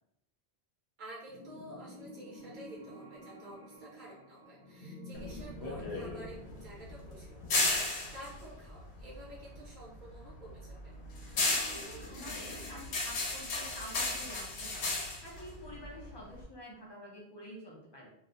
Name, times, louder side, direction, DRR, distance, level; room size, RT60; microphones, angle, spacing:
voice 1, 1.0-10.9, right 1 dB, 55° right, -4 dB, 0.7 m, -50 dB
sound 1, 1.3-12.9, left 1 dB, 60° left, 0.8 m, -51 dB
sound 2, 5.1-9.6 10.0-16.4, left 2 dB, 85° left, 0.9 m, -35 dB
voice 2, 11.7-14.9 15.2-18.1, equal, 35° left, -4 dB, 0.4 m, -48 dB
2.3 x 2.0 x 2.7 m, 0.78 s
omnidirectional pair, 1.1 m